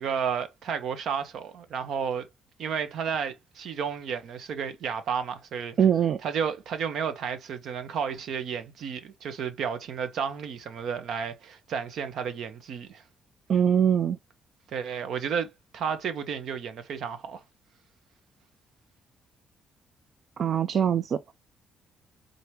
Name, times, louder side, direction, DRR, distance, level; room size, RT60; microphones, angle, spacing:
voice 1, 0.0-2.3 2.6-5.8 6.2-13.0 14.7-17.4, right 7 dB, 70° right, 0.8 m, -32 dB
voice 2, 5.8-6.2 13.5-14.2 20.4-21.2, right 8 dB, 55° right, 0.3 m, -22 dB
3.9 x 2.9 x 3.2 m
cardioid pair, 90°, 0 cm